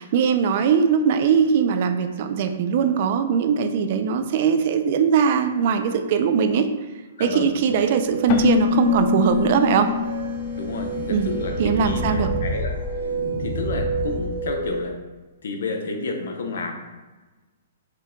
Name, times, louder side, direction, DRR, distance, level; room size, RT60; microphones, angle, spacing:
voice 1, 0.0-6.7 7.2-9.9 11.1-11.3 11.6-12.3, right 6 dB, 45° right, 8 dB, 0.3 m, -20 dB
voice 2, 7.2-7.5 10.6-12.8 13.4-15.0 15.4-16.7, left 3 dB, 75° left, 4 dB, 0.6 m, -30 dB
sound 1, 7.7-14.9, right 5 dB, 80° right, 0.7 m, -31 dB
Keyboard (musical), 8.3-11.9, left 8 dB, 35° left, 0.3 m, -25 dB
sound 2, 8.7-14.8, left 2 dB, ahead, 1.0 m, -32 dB
4.5 x 2.2 x 3.6 m, 1.2 s
hypercardioid pair, 155°, 0 cm